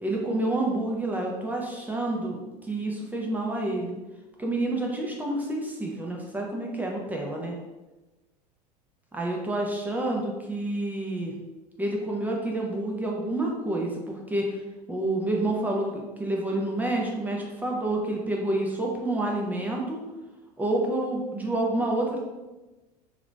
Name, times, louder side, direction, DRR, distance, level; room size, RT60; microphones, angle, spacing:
voice 1, 0.0-2.4 2.7-3.9 4.4-7.6 9.1-11.3 11.8-14.5 14.9-20.0 20.6-22.2, right 1 dB, 10° right, -1 dB, 0.5 m, -28 dB
2.9 x 2.6 x 3.2 m, 1.1 s
figure-of-eight pair, 75°, 21 cm